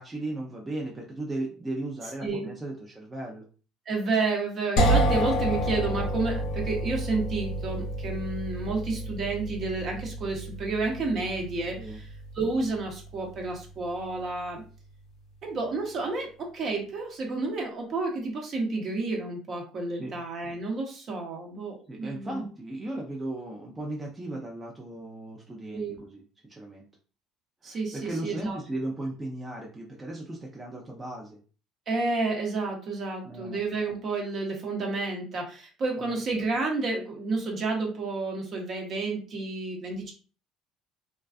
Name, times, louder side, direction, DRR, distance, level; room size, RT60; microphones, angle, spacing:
voice 1, 0.0-3.5 11.7-12.0 19.9-20.2 21.9-26.2 26.5-26.9 27.6-31.4 33.2-33.6 36.0-36.2, right 2 dB, 20° right, -1 dB, 0.5 m, -36 dB
voice 2, 3.9-12.1 12.3-14.6 15.4-22.4 25.7-26.0 27.6-28.6 31.9-40.1, right 3 dB, 50° right, 1 dB, 0.8 m, -30 dB
sound 1, 4.8-14.5, right 1 dB, 65° left, 0.6 m, -30 dB
2.4 x 2.3 x 2.3 m, 0.38 s
supercardioid pair, 95°, 0 cm